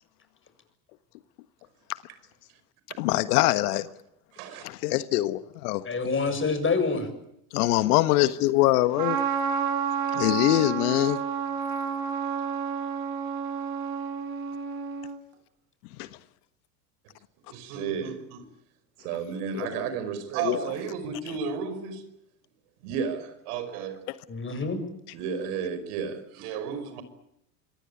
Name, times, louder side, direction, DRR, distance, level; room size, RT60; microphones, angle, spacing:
voice 1, 3.0-3.9 4.6-5.8 7.5-9.2 10.1-11.2 16.0-16.1 19.5-19.8 20.4-20.6 21.3-21.4, left 17 dB, 70° left, 1.5 m, -24 dB
voice 2, 5.8-7.1 24.3-24.8, left 4 dB, 25° left, 7.1 m, -26 dB
Trumpet, 9.0-15.2, right 7 dB, 45° right, 5.5 m, -30 dB
voice 3, 17.5-18.4 19.0-22.1 22.8-23.9 25.1-27.0, right 6 dB, 70° right, 5.4 m, -32 dB
25.5 x 22.0 x 8.6 m
hypercardioid pair, 90°, 47 cm